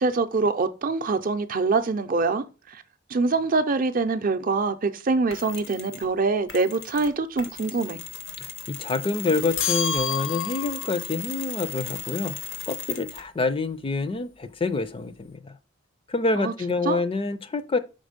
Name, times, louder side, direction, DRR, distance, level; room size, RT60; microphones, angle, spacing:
voice 1, 0.0-2.8 3.1-8.0 16.3-16.5 16.8-17.0, right 3 dB, 45° right, 0.5 m, -24 dB
Mechanisms, 5.3-6.1 6.5-13.4, left 7 dB, 90° left, 1.0 m, -37 dB
voice 2, 8.4-12.3 12.7-15.5 16.1-17.8, left 3 dB, 30° left, 0.4 m, -27 dB
sound 1, 9.6-10.9, left 7 dB, 70° left, 0.8 m, -28 dB
5.2 x 4.0 x 5.1 m
head